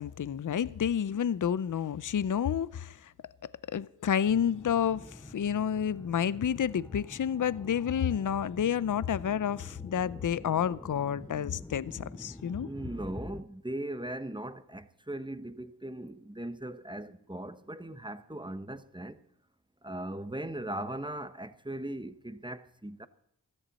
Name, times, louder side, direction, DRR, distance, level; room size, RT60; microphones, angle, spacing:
voice 1, 0.0-3.1 3.7-12.7, left 8 dB, 55° left, 0.6 m, -30 dB
sound 1, 4.3-13.4, left 1 dB, 5° left, 0.5 m, -47 dB
voice 2, 12.6-19.2 19.8-23.1, right 1 dB, 10° right, 1.1 m, -39 dB
16.5 x 14.0 x 4.1 m
cardioid pair, 50°, 38 cm